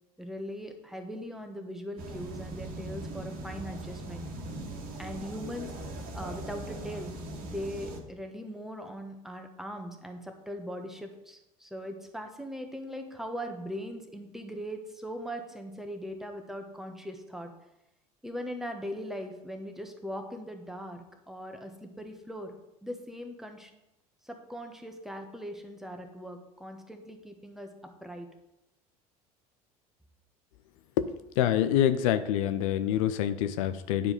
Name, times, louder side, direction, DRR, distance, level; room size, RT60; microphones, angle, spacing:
voice 1, 0.2-4.3 5.0-5.7 6.1-7.1 7.4-17.5 18.2-21.0 21.3-22.5 22.8-23.7 24.3-27.7 28.0-28.3, equal, ahead, 4 dB, 1.4 m, -40 dB
sound 1, 2.0-8.0, right 2 dB, 50° right, 1.7 m, -40 dB
voice 2, 31.4-34.1, left 11 dB, 65° left, 11 dB, 0.5 m, -26 dB
10.0 x 4.6 x 5.2 m, 0.89 s
figure-of-eight pair, 65°, 19 cm